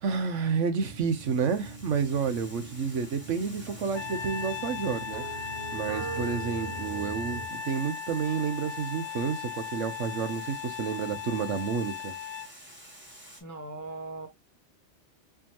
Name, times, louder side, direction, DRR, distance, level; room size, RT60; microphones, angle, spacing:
voice 1, 0.0-5.2 5.7-12.1, right 6 dB, 85° right, 1.2 m, -30 dB
Water, 0.8-13.4, equal, 10° right, 1.2 m, -50 dB
sound 1, 0.8-7.5, right 4 dB, 55° right, 0.9 m, -41 dB
Trumpet, 3.9-12.5, left 7 dB, 75° left, 1.1 m, -37 dB
voice 2, 13.4-14.3, right 2 dB, 20° left, 0.5 m, -39 dB
4.6 x 2.8 x 2.9 m
omnidirectional pair, 1.3 m